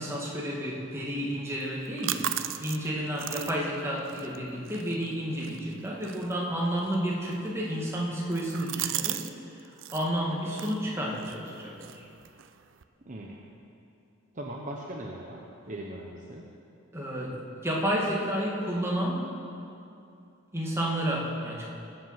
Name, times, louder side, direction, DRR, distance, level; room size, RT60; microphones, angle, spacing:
voice 1, 0.0-9.3 9.9-12.0 16.9-19.2 20.5-21.7, equal, 15° right, -4 dB, 1.9 m, -31 dB
sound 1, 1.6-9.3 9.6-10.1 10.5-12.8, right 12 dB, 65° right, 0.5 m, -38 dB
voice 2, 13.1-13.4 14.3-16.5, right 1 dB, 35° right, -1 dB, 0.9 m, -39 dB
19.0 x 7.9 x 5.8 m, 2.6 s
head